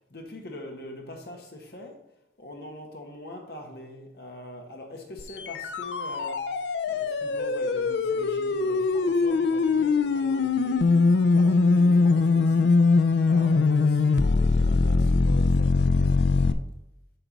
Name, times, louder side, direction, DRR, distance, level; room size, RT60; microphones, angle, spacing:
voice 1, 0.1-2.0 2.4-6.6 6.9-12.8 13.3-16.6, left 1 dB, 60° left, 1 dB, 1.5 m, -43 dB
sound 1, 5.2-16.5, left 4 dB, 80° left, 0.4 m, -22 dB
7.7 x 4.6 x 5.2 m, 0.85 s
head